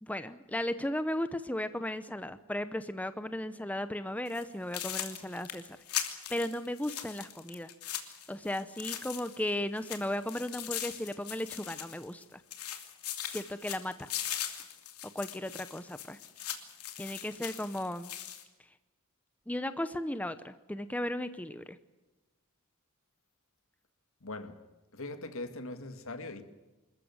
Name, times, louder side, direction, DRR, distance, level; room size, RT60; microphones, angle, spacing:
voice 1, 0.0-7.7 8.3-12.4 13.3-14.1 15.1-16.2 17.0-18.1 19.5-21.8, left 1 dB, 5° left, 0.7 m, -36 dB
sound 1, 4.3-4.4 4.7-9.5 9.8-12.2 12.5-18.4, left 11 dB, 80° left, 2.9 m, -40 dB
voice 2, 24.2-24.6 24.9-26.4, left 2 dB, 65° left, 2.2 m, -41 dB
26.5 x 14.5 x 9.5 m
head